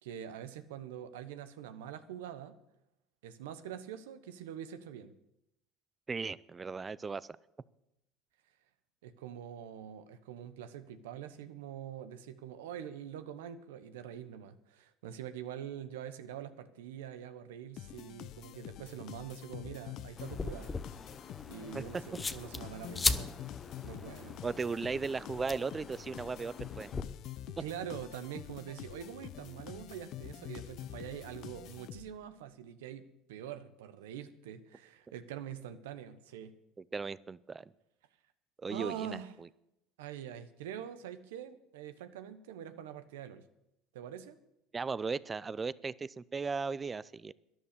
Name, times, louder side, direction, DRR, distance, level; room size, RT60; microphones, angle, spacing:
voice 1, 0.0-2.6 3.2-5.1 9.0-20.8 21.5-23.3 23.8-24.4 27.5-36.5 38.7-39.4 40.0-43.4 43.9-44.4, right 9 dB, 85° right, 11 dB, 1.1 m, -44 dB
voice 2, 6.1-7.3 21.7-21.8 24.4-26.9 36.9-37.6 38.6-39.2 44.7-47.3, right 4 dB, 25° right, 19 dB, 0.5 m, -36 dB
sound 1, 17.8-32.3, left 12 dB, 60° left, 0.6 m, -46 dB
sound 2, 20.2-27.0, left 3 dB, 20° left, 0.8 m, -39 dB
12.5 x 11.0 x 6.8 m, 0.85 s
supercardioid pair, 90°, 0 cm